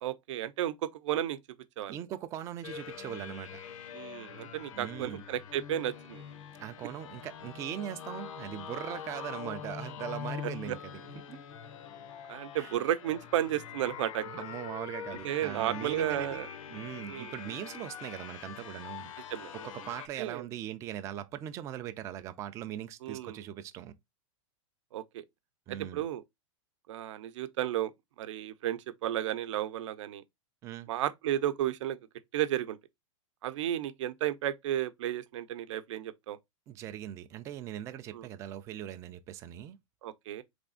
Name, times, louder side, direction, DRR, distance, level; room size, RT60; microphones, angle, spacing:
voice 1, 0.0-1.4 1.8-2.0 3.9-6.2 10.7-10.8 12.3-14.4 15.2-16.5 17.1-17.3 19.3-19.5 20.2-20.4 23.0-23.4 24.9-25.2 25.7-26.2 26.9-27.9 28.2-30.2 30.9-32.0 32.3-32.8 33.4-36.4 38.1-38.3 40.0-40.4, right 12 dB, 65° right, 0.7 m, -33 dB
voice 2, 1.9-3.6 4.7-5.2 6.6-11.4 12.6-12.7 14.3-19.1 19.5-23.9 25.7-26.0 30.6-30.9 36.7-39.8, right 11 dB, 20° right, 0.3 m, -40 dB
sound 1, 2.6-20.1, left 8 dB, 80° left, 0.9 m, -44 dB
4.0 x 3.4 x 3.7 m
supercardioid pair, 160°, 17 cm